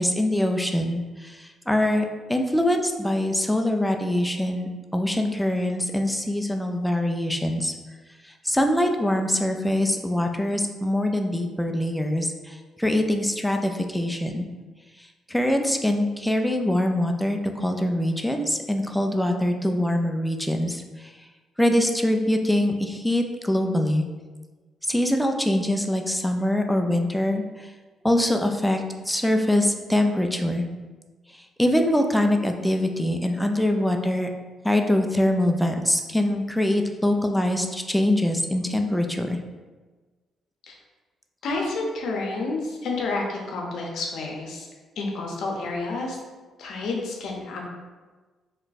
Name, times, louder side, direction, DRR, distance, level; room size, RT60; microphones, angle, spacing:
voice 1, 0.0-7.7 8.2-14.5 15.0-21.1 21.6-24.0 24.8-27.7 28.0-30.7 31.3-34.3 34.6-39.4, left 1 dB, 5° left, 4 dB, 0.3 m, -24 dB
voice 2, 41.4-44.7 45.0-46.2 46.6-47.6, left 3 dB, 75° left, 0 dB, 0.7 m, -29 dB
3.0 x 2.2 x 4.0 m, 1.3 s
cardioid pair, 90°, 0 cm